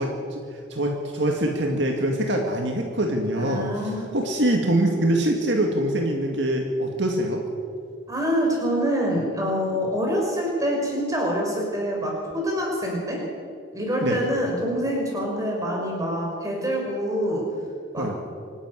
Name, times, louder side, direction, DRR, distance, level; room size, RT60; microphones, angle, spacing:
voice 1, 0.0-7.4 14.0-14.2 18.0-18.2, right 1 dB, 60° right, 2 dB, 2.1 m, -24 dB
voice 2, 3.4-4.2 8.1-13.2 13.7-17.4 17.9-18.1, equal, 15° right, -1 dB, 5.6 m, -26 dB
25.0 x 11.0 x 9.8 m, 2.3 s
head